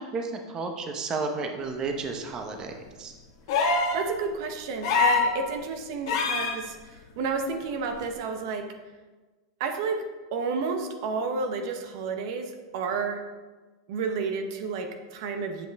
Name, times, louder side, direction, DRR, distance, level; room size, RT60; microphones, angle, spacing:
voice 1, 0.0-2.7 3.0-3.1, right 4 dB, 30° right, 4 dB, 0.9 m, -32 dB
sound 1, 3.5-4.0 4.8-5.3 6.1-6.6 8.0-8.1, left 4 dB, 65° left, 1.3 m, -23 dB
voice 2, 3.9-8.6 9.6-10.0 10.3-13.2 13.9-15.7, right 4 dB, 60° right, 5 dB, 0.8 m, -31 dB
7.9 x 5.2 x 3.5 m, 1.3 s
supercardioid pair, 125°, 2 cm